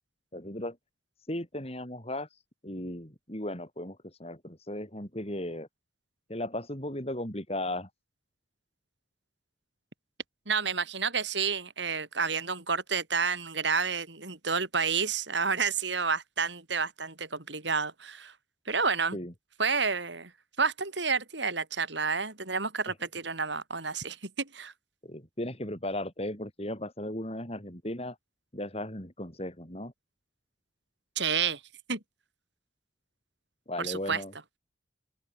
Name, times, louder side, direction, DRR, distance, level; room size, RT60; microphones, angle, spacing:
voice 1, 0.3-0.8 1.3-5.7 6.3-7.9 19.1-19.3 22.9-23.0 25.0-28.2 28.5-29.9 33.7-34.3, left 1 dB, 30° left, 6.2 m, -36 dB
voice 2, 10.5-18.3 18.7-19.2 19.6-20.3 20.6-24.7 31.2-31.6 31.9-32.0 33.8-34.2, right 5 dB, 70° right, 5.3 m, -30 dB
open air
head